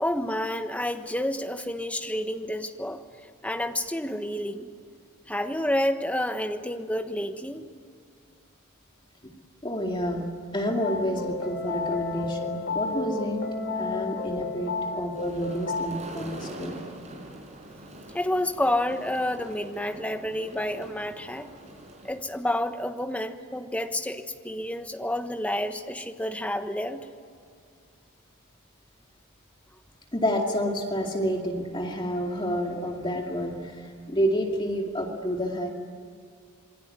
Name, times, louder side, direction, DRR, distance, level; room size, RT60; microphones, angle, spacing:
voice 1, 0.0-3.0 3.4-4.7 5.3-7.7 18.1-21.5 22.0-27.0, left 1 dB, 5° left, 6 dB, 1.3 m, -29 dB
voice 2, 9.6-13.4 13.8-16.8 30.1-35.7, equal, 20° left, 1 dB, 2.3 m, -29 dB
sound 1, 10.8-15.9, left 3 dB, 55° left, 2.8 m, -31 dB
sound 2, 15.1-22.2, right 1 dB, 30° right, 5.4 m, -44 dB
27.5 x 22.5 x 9.6 m, 2.2 s
head